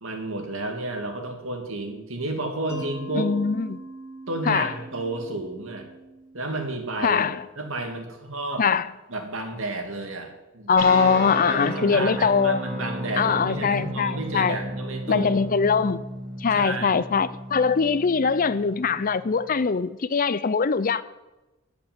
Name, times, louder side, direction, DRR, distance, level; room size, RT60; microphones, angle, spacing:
voice 1, 0.0-3.3 4.3-5.9 6.3-8.6 9.1-10.7 11.5-15.4 16.5-17.0, right 2 dB, 65° right, 2.6 m, -31 dB
Mallet percussion, 2.7-7.5, right 2 dB, 15° left, 2.2 m, -43 dB
voice 2, 3.1-3.8 4.5-4.7 7.0-7.4 8.6-8.9 10.7-12.6 13.2-14.6 15.1-16.0 16.4-21.0, left 5 dB, 40° left, 0.5 m, -22 dB
sound 1, 10.8-19.6, equal, 40° right, 4.1 m, -34 dB
14.0 x 6.8 x 9.5 m
head